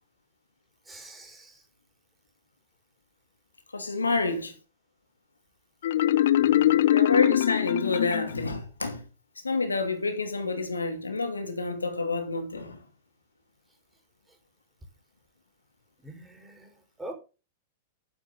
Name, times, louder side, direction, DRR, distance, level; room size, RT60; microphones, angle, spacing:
voice 1, 0.9-1.6 6.4-6.8 16.0-17.1, right 1 dB, 10° right, 5.3 m, -44 dB
voice 2, 3.7-4.5 6.9-9.0 9.4-12.8, left 3 dB, 90° left, 2.5 m, -28 dB
Marimba xylophone, 5.8-8.6, left 12 dB, 65° left, 0.4 m, -23 dB
11.0 x 9.9 x 4.1 m
hypercardioid pair, 100°, 0 cm